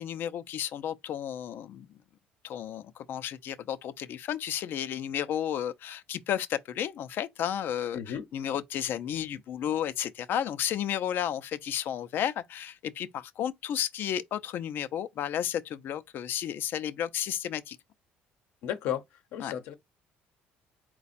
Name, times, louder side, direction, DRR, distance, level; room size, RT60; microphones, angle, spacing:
voice 1, 0.0-2.0 2.4-17.8 19.4-19.5, left 10 dB, 60° left, 0.5 m, -32 dB
voice 2, 7.9-8.2 18.6-19.0 19.3-19.7, left 10 dB, 80° left, 0.9 m, -33 dB
4.2 x 2.3 x 4.1 m
cardioid pair, 100°, 4 cm